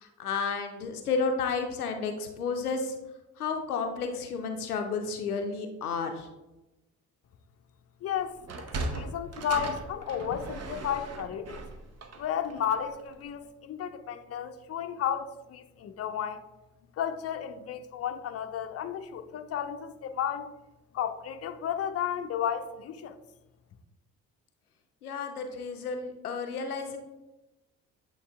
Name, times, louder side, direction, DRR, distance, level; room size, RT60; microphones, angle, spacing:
voice 1, 0.0-2.9 3.4-6.3 25.0-27.0, left 4 dB, 85° left, 5 dB, 0.6 m, -32 dB
voice 2, 8.0-8.4 8.9-11.6 12.2-16.4 16.9-20.5 20.9-23.2, left 9 dB, 35° left, 8 dB, 0.6 m, -33 dB
Sliding door, 8.4-13.0, right 3 dB, 35° right, 0.9 m, -38 dB
8.4 x 3.3 x 3.4 m, 1.0 s
figure-of-eight pair, 45°, 43 cm